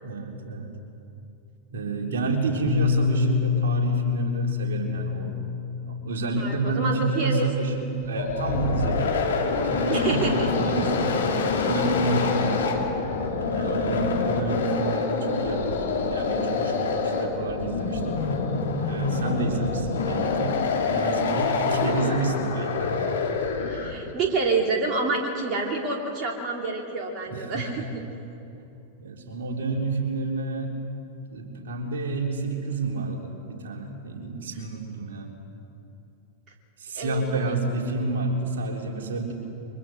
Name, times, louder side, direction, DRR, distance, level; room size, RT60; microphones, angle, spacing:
voice 1, 0.0-0.7 1.7-5.4 5.8-11.3 11.6-12.9 13.5-18.3 18.8-22.9 27.3-27.9 28.6-28.7 29.0-30.7 31.3-35.3 36.8-39.3, right 3 dB, 60° right, 1 dB, 3.7 m, -29 dB
Bass guitar, 2.7-7.2 7.9-8.9, left 6 dB, 50° left, 7.1 m, -28 dB
voice 2, 6.4-7.5 9.0-9.1 9.9-10.5 21.6-22.1 23.6-27.8 36.9-37.5, right 3 dB, 35° right, 0 dB, 3.1 m, -28 dB
sound 1, 8.0-24.1, left 4 dB, 65° left, 3.3 m, -26 dB
30.0 x 24.0 x 6.6 m, 2.7 s
figure-of-eight pair, 90°, 0 cm